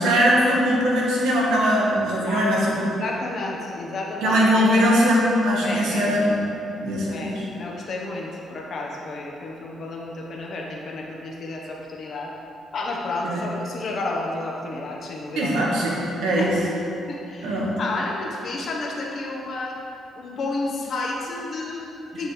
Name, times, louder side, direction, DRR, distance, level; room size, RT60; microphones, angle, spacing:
voice 1, 0.0-3.0 4.2-6.5 6.8-7.5 13.2-13.4 15.4-16.5 17.4-17.7, equal, 85° right, -4 dB, 1.5 m, -21 dB
voice 2, 2.8-4.4 5.6-6.2 7.1-12.3 12.7-15.6 16.4-16.5 17.1-19.8 20.2-22.3, left 2 dB, 55° left, -1 dB, 1.2 m, -31 dB
9.1 x 5.4 x 3.3 m, 2.8 s
cardioid pair, 90°, 0 cm